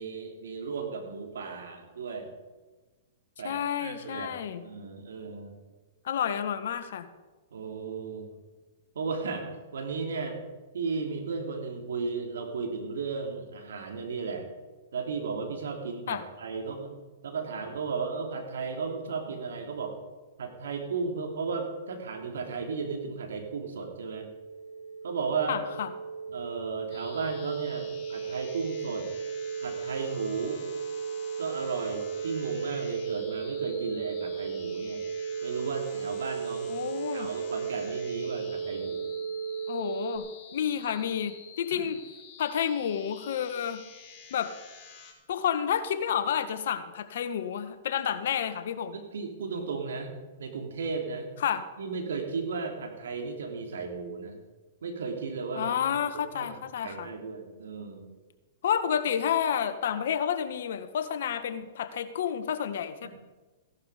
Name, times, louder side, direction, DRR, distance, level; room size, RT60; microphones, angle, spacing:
voice 1, 0.0-2.3 3.4-4.3 4.6-5.6 7.5-8.3 8.9-9.5 9.7-10.4 10.7-14.5 14.9-17.0 17.2-19.9 20.4-24.3 25.0-25.6 26.3-29.1 29.6-30.6 31.4-35.0 35.4-36.7 37.1-39.0 41.7-41.8 48.9-50.1 50.4-51.3 51.8-54.4 54.8-56.5 56.8-58.1 63.0-63.1, right 5 dB, 80° right, 3 dB, 3.1 m, -35 dB
voice 2, 3.4-4.6 6.0-7.1 16.1-16.2 25.5-25.9 36.7-37.3 39.7-40.2 40.5-42.0 42.4-43.8 44.3-44.5 45.3-49.0 51.4-51.6 55.5-57.1 58.6-63.1, left 8 dB, 70° left, 10 dB, 1.3 m, -30 dB
sound 1, 23.2-40.2, right 6 dB, 85° left, 2.1 m, -36 dB
sound 2, 26.9-45.1, left 6 dB, 30° left, 4.6 m, -50 dB
16.0 x 11.5 x 5.0 m, 1.3 s
hypercardioid pair, 125°, 0 cm